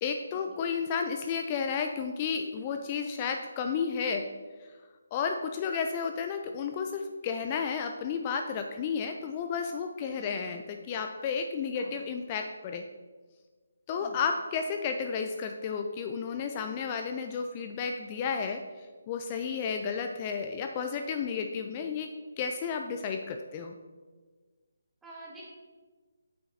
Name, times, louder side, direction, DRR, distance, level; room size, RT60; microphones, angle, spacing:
voice 1, 0.0-4.3 5.1-12.8 13.9-18.6 19.1-23.7, left 6 dB, 25° left, 5 dB, 0.3 m, -32 dB
voice 2, 10.1-10.6 11.7-12.0 14.0-14.2 25.0-25.4, right 2 dB, 5° right, -6 dB, 1.5 m, -48 dB
8.6 x 6.8 x 2.7 m, 1.4 s
figure-of-eight pair, 150°, 0 cm